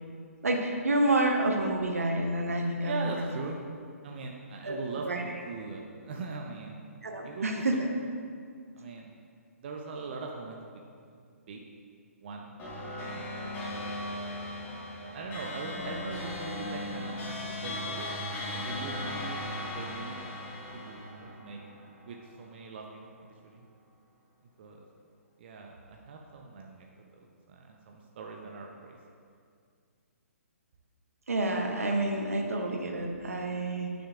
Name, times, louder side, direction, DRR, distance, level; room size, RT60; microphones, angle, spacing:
voice 1, 0.4-3.2 4.6-4.8 5.0-5.2 7.0-7.9 31.3-33.9, right 1 dB, 70° right, 3 dB, 0.9 m, -28 dB
voice 2, 2.8-3.6 4.0-6.8 7.2-7.8 8.7-9.1 9.6-10.6 11.5-11.6 12.2-12.5 12.8-14.0 14.6-18.1 18.5-20.4 20.7-21.6 22.1-23.6 24.6-24.9 25.4-26.9 27.5-29.0, right 3 dB, 45° right, 1 dB, 0.6 m, -41 dB
sound 1, 12.6-22.2, left 1 dB, 20° left, 1.4 m, -37 dB
9.4 x 6.3 x 2.4 m, 2.2 s
figure-of-eight pair, 130°, 8 cm